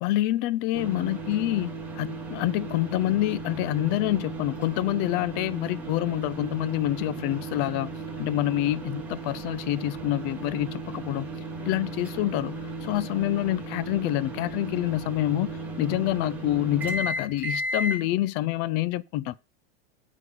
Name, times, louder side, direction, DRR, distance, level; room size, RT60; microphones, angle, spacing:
voice 1, 0.0-7.9 8.2-11.3 11.7-19.3, left 15 dB, 35° left, 0.5 m, -27 dB
sound 1, 0.7-18.0, right 2 dB, 5° right, 2.6 m, -35 dB
8.1 x 5.1 x 7.0 m
supercardioid pair, 150°, 31 cm